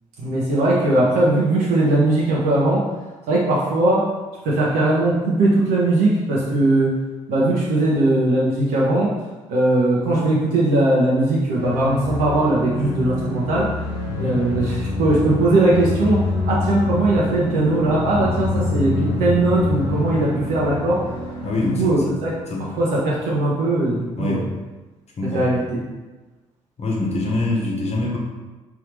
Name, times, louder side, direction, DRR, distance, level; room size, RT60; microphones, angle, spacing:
voice 1, 0.2-2.9 3.3-4.1 4.4-7.0 7.3-9.1 9.5-13.7 14.2-21.1 21.5-22.4 22.8-24.4 25.3-25.8, right 2 dB, 70° right, -6 dB, 0.7 m, -19 dB
sound 1, 11.5-22.3, left 2 dB, 90° left, 1.0 m, -26 dB
voice 2, 14.1-14.4 21.4-22.2 22.5-22.7 24.2-24.5 25.2-25.5 26.8-28.2, left 2 dB, 40° left, -2 dB, 1.1 m, -24 dB
3.4 x 2.8 x 3.2 m, 1.2 s
hypercardioid pair, 45°, 16 cm